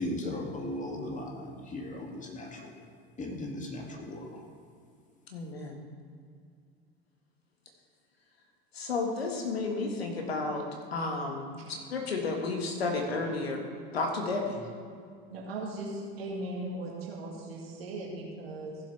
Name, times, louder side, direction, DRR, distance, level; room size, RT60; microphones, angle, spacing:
voice 1, 0.0-2.8 3.2-4.5, left 1 dB, 25° left, 1 dB, 2.1 m, -37 dB
voice 2, 5.3-5.8 8.7-10.6 10.9-11.5 11.9-13.6 13.9-14.6, left 3 dB, 85° left, 2 dB, 1.7 m, -32 dB
voice 3, 15.3-18.8, right 2 dB, 80° right, -3 dB, 2.0 m, -38 dB
15.5 x 7.5 x 3.3 m, 2.2 s
hypercardioid pair, 75°, 30 cm